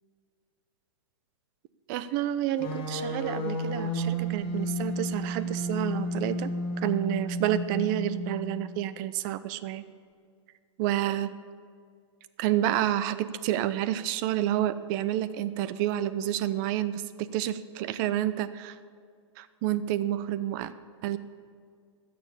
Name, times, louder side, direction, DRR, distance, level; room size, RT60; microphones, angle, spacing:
voice 1, 1.9-6.5 6.8-9.8 10.8-11.3 12.4-18.8 19.4-20.7 21.0-21.2, right 12 dB, 40° right, 14 dB, 0.6 m, -29 dB
sound 1, 2.6-8.7, equal, 35° left, 3.9 m, -32 dB
15.0 x 6.9 x 8.3 m, 2.1 s
hypercardioid pair, 125°, 15 cm